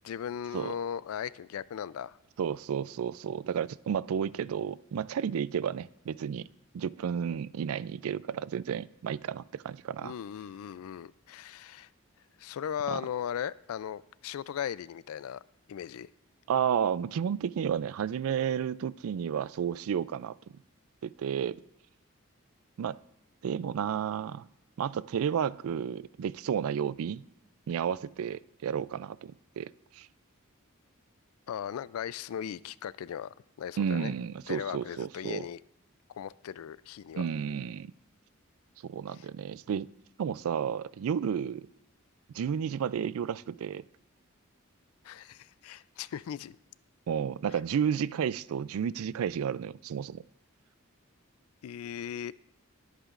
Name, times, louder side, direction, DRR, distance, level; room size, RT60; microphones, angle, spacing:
voice 1, 0.0-2.2 10.0-11.9 12.4-15.4 15.7-16.1 31.5-34.1 34.5-35.6 36.1-37.2 39.1-39.3 45.0-46.6 51.6-52.3, left 9 dB, 75° left, 19 dB, 0.3 m, -38 dB
voice 2, 2.4-6.5 6.7-10.1 12.9-13.0 16.5-20.4 21.0-21.6 22.8-23.0 23.4-24.5 24.8-27.2 27.7-30.1 33.8-35.5 37.2-37.9 38.8-39.9 40.2-41.7 42.3-43.8 47.1-50.2, right 8 dB, 75° right, 19 dB, 0.3 m, -32 dB
20.5 x 8.1 x 2.5 m, 0.86 s
head